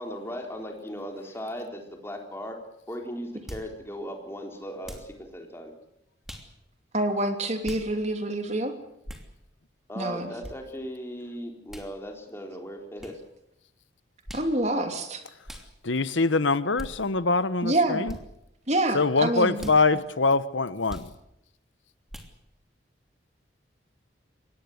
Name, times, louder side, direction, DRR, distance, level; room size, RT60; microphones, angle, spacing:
voice 1, 0.0-2.6 2.9-5.7 9.9-13.1, equal, 15° left, 3 dB, 3.9 m, -37 dB
sound 1, 3.5-3.7 4.8-5.1 6.2-6.5 7.6-7.9 9.0-9.3 10.4-10.6 11.7-11.9 13.0-13.2 14.2-14.5 15.4-15.7 16.8-16.9 18.0-18.2 19.6-19.8 20.9-21.1 22.1-22.3, equal, ahead, 2.9 m, -40 dB
voice 2, 6.9-8.7 10.0-10.3 14.3-15.2 17.6-18.0 18.7-19.7, right 1 dB, 35° right, 6 dB, 2.9 m, -26 dB
voice 3, 15.8-18.1 18.9-21.1, left 3 dB, 85° left, 14 dB, 1.1 m, -24 dB
24.0 x 19.0 x 8.1 m, 0.82 s
head